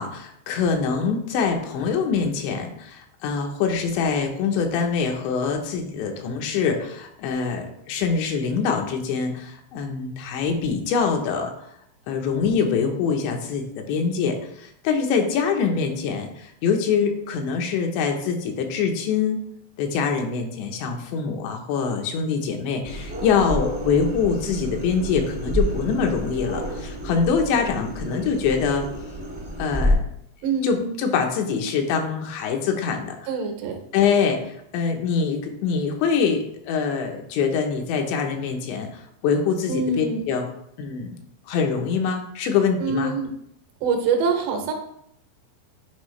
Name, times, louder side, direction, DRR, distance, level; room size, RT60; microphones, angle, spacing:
voice 1, 0.0-11.5 12.1-14.4 14.8-19.4 19.8-28.9 29.6-30.1 30.6-33.2 33.9-34.4 34.7-38.9 39.2-40.5 40.8-41.1 41.5-43.1, left 6 dB, 80° left, 3 dB, 3.2 m, -24 dB
sound 1, 22.8-29.9, equal, 40° right, 0.5 m, -29 dB
voice 2, 30.4-30.9 33.3-33.8 39.7-40.2 42.8-43.3 43.8-44.7, right 4 dB, 80° right, 4 dB, 3.1 m, -24 dB
10.0 x 4.9 x 3.2 m, 0.73 s
omnidirectional pair, 5.1 m